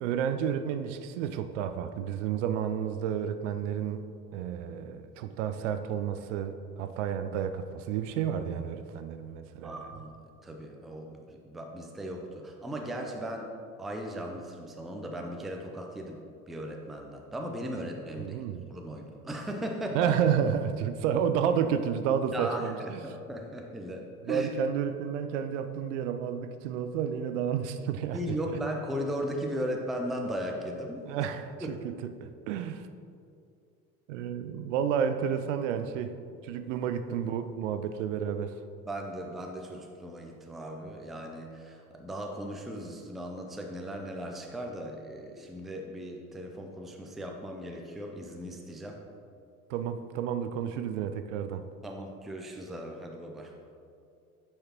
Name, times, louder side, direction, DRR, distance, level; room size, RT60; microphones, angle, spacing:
voice 1, 0.0-4.0 4.3-9.9 18.2-18.7 19.9-23.0 24.2-28.2 31.1-32.9 34.1-36.2 36.4-38.5 49.7-51.7, right 8 dB, 55° right, 9 dB, 0.5 m, -31 dB
voice 2, 9.6-10.1 10.4-13.5 13.8-16.2 16.5-18.4 18.7-20.1 22.3-24.5 28.1-31.1 31.6-31.8 38.8-49.0 51.8-53.5, equal, ahead, 2 dB, 0.4 m, -37 dB
8.6 x 4.7 x 2.9 m, 2.4 s
figure-of-eight pair, 65°, 45 cm